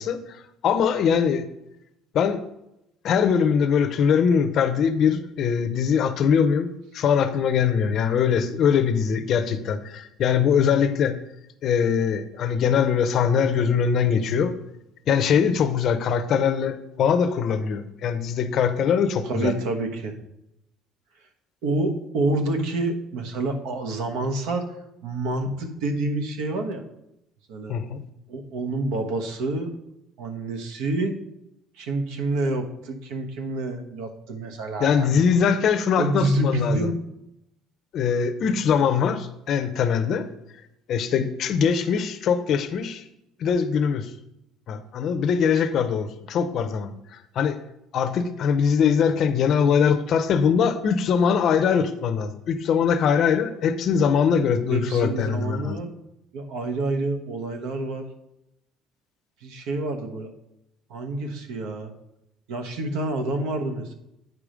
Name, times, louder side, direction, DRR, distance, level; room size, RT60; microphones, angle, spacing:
voice 1, 0.0-1.5 2.1-2.4 3.0-11.2 11.6-14.6 15.1-19.5 27.7-28.0 34.8-36.9 37.9-40.3 40.9-43.0 43.4-44.1 44.7-46.9 47.4-47.6 47.9-55.8, left 7 dB, 40° left, 10 dB, 0.6 m, -22 dB
voice 2, 19.2-20.1 21.6-24.7 25.0-26.8 27.5-27.8 28.3-29.7 30.2-31.2 31.7-35.2 36.0-36.9 54.7-56.0 56.3-58.1 59.4-60.3 60.9-61.9 62.5-63.9, right 2 dB, 80° right, 5 dB, 1.2 m, -28 dB
9.3 x 4.9 x 5.1 m, 0.85 s
cardioid pair, 175°, 0 cm